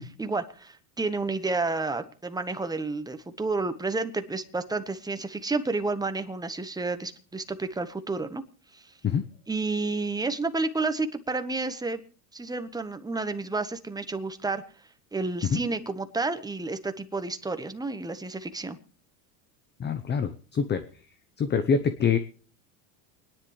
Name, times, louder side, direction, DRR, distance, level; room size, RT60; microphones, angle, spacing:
voice 1, 0.2-8.4 8.7-8.8 9.5-12.0 12.3-14.6 15.1-18.8, right 3 dB, 10° right, 9 dB, 1.2 m, -30 dB
voice 2, 19.8-20.8 21.4-22.2, left 6 dB, 20° left, 11 dB, 0.8 m, -25 dB
29.0 x 10.5 x 3.2 m, 0.39 s
supercardioid pair, 110°, 46 cm